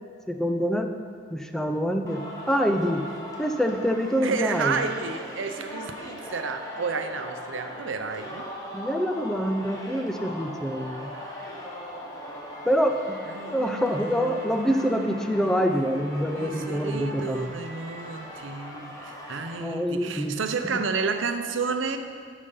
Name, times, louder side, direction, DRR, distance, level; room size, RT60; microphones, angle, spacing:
voice 1, 0.3-0.9 1.3-3.0 3.4-4.8 8.7-11.1 12.6-13.2 13.5-17.6 19.6-20.4, equal, 5° left, 5 dB, 0.5 m, -26 dB
Singing, 2.1-19.6, equal, 20° left, 1.3 m, -39 dB
voice 2, 4.2-8.5 13.3-15.5 16.3-22.0, right 5 dB, 85° right, 8 dB, 0.6 m, -31 dB
12.0 x 5.0 x 5.5 m, 2.2 s
head